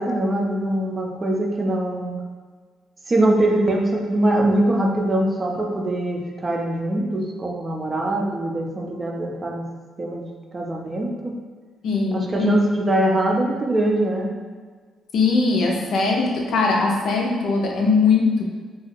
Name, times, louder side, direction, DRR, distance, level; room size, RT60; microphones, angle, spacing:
voice 1, 0.0-2.2 3.1-9.7 10.0-11.4 12.1-14.3, right 1 dB, 30° right, 1 dB, 0.4 m, -22 dB
voice 2, 11.8-12.6 15.1-18.4, left 4 dB, 70° left, 0 dB, 0.5 m, -20 dB
2.4 x 2.4 x 3.1 m, 1.5 s
cardioid pair, 90°, 0 cm